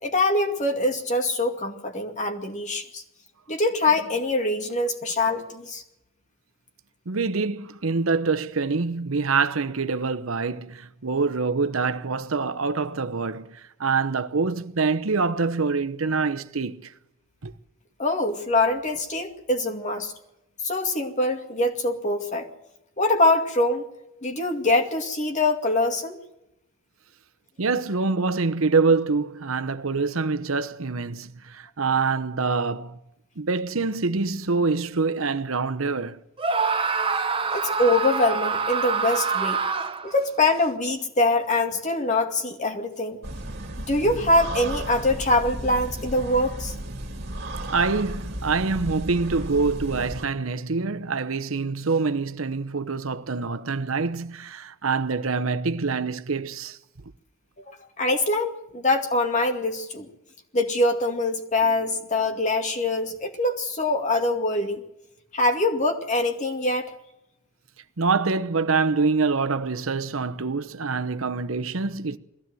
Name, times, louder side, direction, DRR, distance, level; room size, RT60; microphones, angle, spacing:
voice 1, 0.0-3.0 3.5-5.8 18.0-20.1 20.6-22.5 23.0-23.8 24.2-26.2 36.5-36.7 37.5-39.6 40.0-43.2 43.9-46.7 57.7-60.1 60.5-64.8 65.3-66.9, left 2 dB, 35° left, 2.3 m, -24 dB
voice 2, 7.1-16.9 17.4-17.5 27.6-33.0 33.4-36.2 47.7-56.8 68.0-72.2, right 4 dB, 85° right, 0.9 m, -25 dB
Screaming, 36.4-40.2, right 5 dB, 25° right, 1.1 m, -25 dB
sound 1, 43.2-50.2, right 1 dB, 55° right, 2.4 m, -34 dB
21.5 x 15.5 x 7.7 m
head